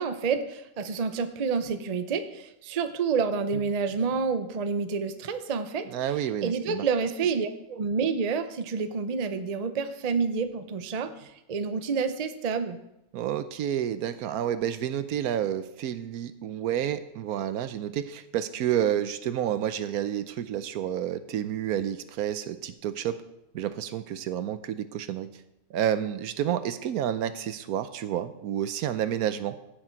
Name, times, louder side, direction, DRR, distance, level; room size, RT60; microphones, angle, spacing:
voice 1, 0.0-5.9 6.4-12.8, right 5 dB, 40° right, 9 dB, 0.5 m, -29 dB
voice 2, 5.9-6.8 13.1-23.2 23.5-25.3 25.7-29.6, right 10 dB, 80° right, 12 dB, 1.1 m, -30 dB
15.5 x 6.7 x 4.5 m, 0.87 s
omnidirectional pair, 1.6 m